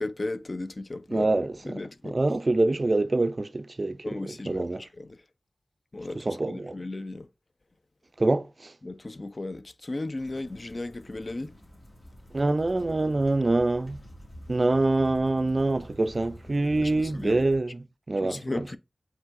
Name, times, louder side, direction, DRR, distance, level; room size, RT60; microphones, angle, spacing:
voice 1, 0.0-2.2 4.0-5.2 5.9-7.3 8.8-11.5 16.8-17.4 18.2-18.8, left 2 dB, 50° left, 0.4 m, -35 dB
voice 2, 1.1-4.9 6.2-6.7 8.2-8.7 12.3-14.0 14.5-18.7, right 2 dB, 50° right, 0.3 m, -26 dB
sound 1, 10.2-17.6, equal, 75° left, 1.7 m, -47 dB
4.6 x 3.8 x 2.5 m
wide cardioid pair, 55°, 0 cm